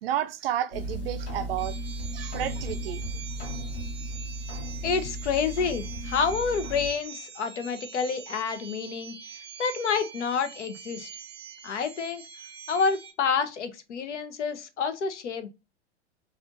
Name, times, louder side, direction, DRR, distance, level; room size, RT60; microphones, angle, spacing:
voice 1, 0.0-1.8 2.1-3.0, right 11 dB, 55° right, 0.5 m, -31 dB
sound 1, 0.7-6.9, right 1 dB, 50° left, 1.4 m, -35 dB
sound 2, 1.6-13.1, right 8 dB, 15° right, 0.8 m, -44 dB
voice 2, 4.8-9.3 9.6-11.1 11.6-12.2 12.7-15.5, left 5 dB, 75° left, 0.7 m, -28 dB
4.3 x 2.4 x 2.6 m
hypercardioid pair, 110°, 36 cm